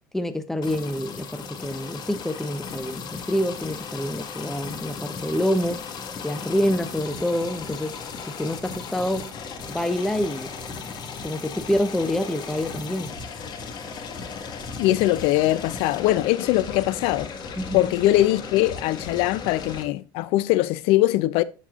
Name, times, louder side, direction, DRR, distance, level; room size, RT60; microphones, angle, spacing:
voice 1, 0.1-5.8 6.2-8.0 8.3-9.3 9.7-10.5 11.2-13.2 17.6-17.9, left 1 dB, 5° left, 0.6 m, -27 dB
sound 1, 0.6-19.8, left 5 dB, 45° left, 1.5 m, -36 dB
voice 2, 14.8-17.3 17.7-21.4, left 16 dB, 70° left, 0.5 m, -21 dB
11.0 x 4.2 x 2.4 m
supercardioid pair, 110°, 10 cm